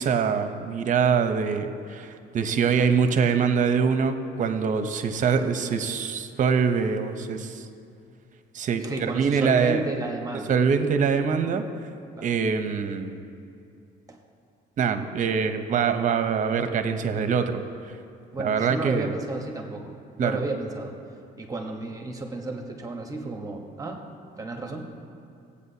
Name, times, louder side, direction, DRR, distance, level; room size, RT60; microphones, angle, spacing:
voice 1, 0.0-7.6 8.5-9.8 10.5-11.6 12.2-13.2 14.8-17.6 18.4-19.1 20.2-20.4, right 6 dB, 50° right, 8 dB, 0.8 m, -24 dB
voice 2, 8.8-10.6 12.2-12.3 14.1-14.2 18.3-19.9 20.2-20.9 21.4-24.0 24.4-25.0, right 2 dB, 20° right, 2 dB, 1.1 m, -32 dB
17.0 x 8.4 x 2.8 m, 2.5 s
cardioid pair, 110°, 17 cm